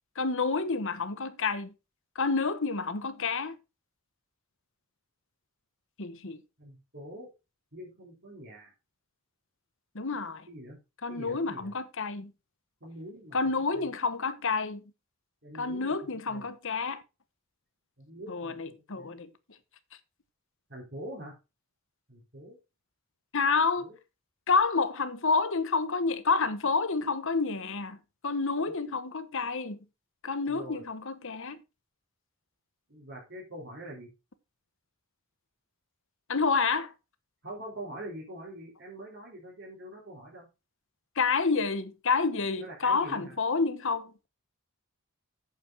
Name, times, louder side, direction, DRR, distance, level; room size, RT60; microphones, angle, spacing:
voice 1, 0.2-1.7 2.1-3.6 6.0-6.4 9.9-10.5 11.0-12.3 13.3-14.8 15.5-17.0 18.3-19.3 23.3-23.9 24.5-28.0 28.2-29.8 30.2-31.6 36.3-36.9 41.2-44.3, left 4 dB, 60° left, 1.1 m, -29 dB
voice 2, 6.6-7.3 7.7-8.7 10.5-10.8 11.1-11.7 12.8-13.4 13.7-13.9 15.4-16.5 18.0-19.2 20.7-21.3 22.1-22.6 23.8-24.0 30.5-30.8 32.9-34.1 37.4-40.5 42.6-43.3, right 1 dB, 50° right, 4.1 m, -44 dB
8.8 x 6.7 x 4.9 m
head